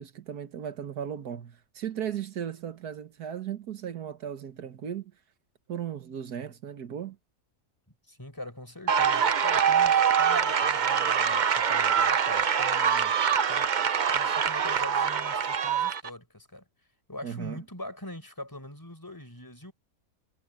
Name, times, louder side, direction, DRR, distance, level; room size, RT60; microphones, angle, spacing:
voice 1, 0.0-5.1 5.7-7.2 17.2-17.6, right 9 dB, 85° right, 1.9 m, -36 dB
voice 2, 8.1-13.2 13.5-13.7 14.1-16.7 17.1-19.7, left 1 dB, 15° left, 4.6 m, -43 dB
sound 1, 8.9-16.1, right 7 dB, 45° right, 0.6 m, -24 dB
omnidirectional pair, 1.6 m